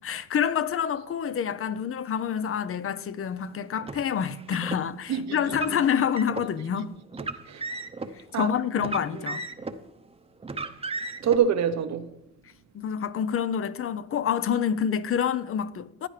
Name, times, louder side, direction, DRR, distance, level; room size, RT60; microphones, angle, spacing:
voice 1, 0.0-6.9 8.1-9.4 12.7-16.1, left 8 dB, 45° left, 0.6 m, -27 dB
Car, 3.8-4.8 5.5-6.5 7.1-8.1 8.8-9.8 10.4-11.4, right 3 dB, 20° right, 0.8 m, -35 dB
voice 2, 5.1-5.6 6.6-6.9 7.5-7.8 8.3-8.5 9.0-9.2 11.2-12.2 14.9-15.0, right 8 dB, 65° right, 0.8 m, -27 dB
15.5 x 9.8 x 3.3 m
cardioid pair, 90°, 30 cm